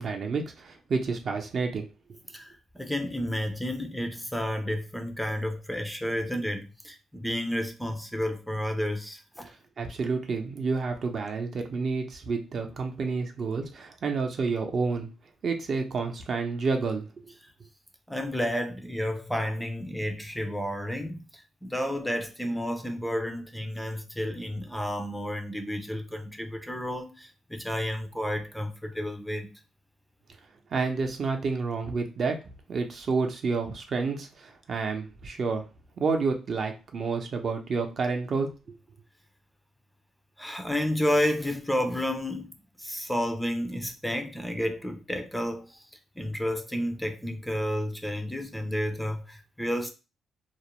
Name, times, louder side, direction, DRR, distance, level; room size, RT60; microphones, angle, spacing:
voice 1, 0.0-2.2 9.8-15.1 15.4-17.1 30.7-35.7 36.0-38.5, right 4 dB, 50° right, 0.5 m, -29 dB
voice 2, 2.3-9.5 18.1-29.5 40.4-45.9 46.2-49.9, equal, 5° left, 0.4 m, -31 dB
2.4 x 2.0 x 2.9 m
cardioid pair, 90°, 0 cm